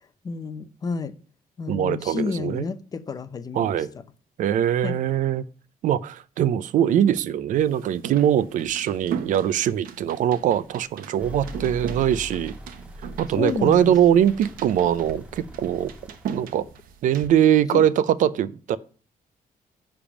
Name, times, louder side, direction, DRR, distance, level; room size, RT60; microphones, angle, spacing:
voice 1, 0.2-1.1 1.6-3.8 4.8-5.0 13.4-13.9 17.7-17.8, left 5 dB, 25° left, 0.5 m, -30 dB
voice 2, 1.7-2.6 3.5-3.9 4.4-5.4 5.8-12.5 13.2-15.9 16.3-16.7 17.0-18.8, right 10 dB, 65° right, 0.5 m, -22 dB
sound 1, 7.6-17.3, right 8 dB, 85° right, 0.9 m, -38 dB
sound 2, 11.2-16.7, left 1 dB, 10° right, 0.8 m, -41 dB
10.0 x 3.5 x 7.1 m
cardioid pair, 175°, 14 cm